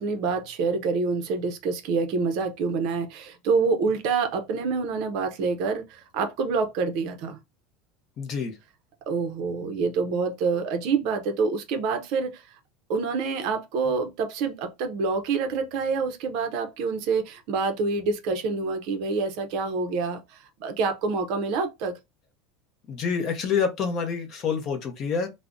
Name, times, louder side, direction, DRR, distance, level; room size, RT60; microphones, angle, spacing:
voice 1, 0.0-7.4 9.1-12.6 12.9-21.9, right 4 dB, 50° right, 0.5 m, -27 dB
voice 2, 8.2-8.6 22.9-25.3, left 6 dB, 30° left, 0.6 m, -27 dB
2.5 x 2.0 x 3.5 m
cardioid pair, 170°, 0 cm